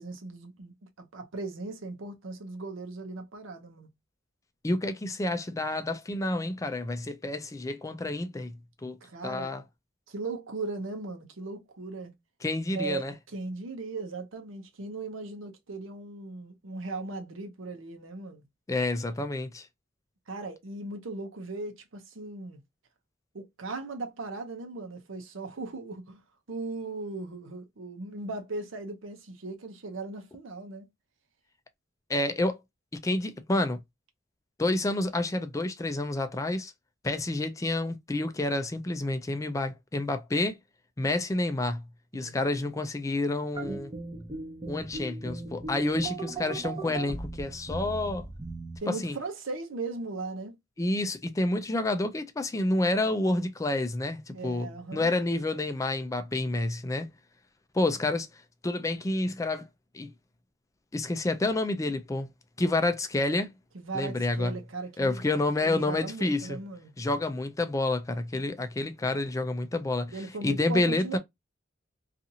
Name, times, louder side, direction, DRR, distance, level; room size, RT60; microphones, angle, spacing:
voice 1, 0.0-3.9 9.0-9.5 10.1-12.1 12.7-18.4 20.3-22.6 23.3-26.2 26.5-30.9 42.1-42.6 48.8-50.5 54.3-55.1 63.7-65.2 65.6-66.9 70.1-71.2, right 3 dB, 85° right, 0.7 m, -38 dB
voice 2, 4.6-8.5 8.8-9.0 9.2-9.6 12.4-13.1 18.7-19.7 32.1-32.6 33.0-33.8 34.6-36.7 37.0-40.5 41.0-41.8 42.1-43.9 44.7-48.3 48.9-49.2 50.8-57.1 57.7-58.3 58.6-59.7 59.9-60.1 60.9-62.3 62.6-63.5 63.9-64.5 65.0-66.6 67.0-71.2, left 2 dB, 15° left, 0.3 m, -29 dB
sound 1, 43.5-48.8, right 3 dB, 25° right, 0.6 m, -38 dB
2.7 x 2.5 x 2.6 m
head